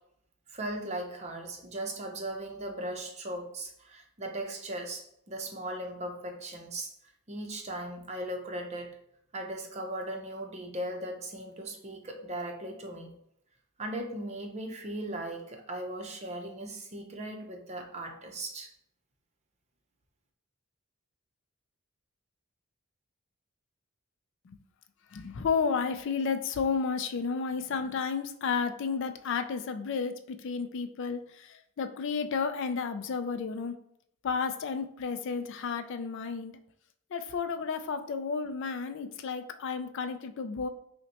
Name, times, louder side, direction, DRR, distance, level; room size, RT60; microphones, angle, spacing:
voice 1, 0.5-9.0 9.3-13.1 13.8-18.7, right 1 dB, 30° right, 3 dB, 0.6 m, -38 dB
voice 2, 25.1-33.8 34.2-36.6 37.1-40.7, left 5 dB, 55° left, 9 dB, 0.4 m, -32 dB
5.5 x 2.1 x 2.9 m, 0.73 s
head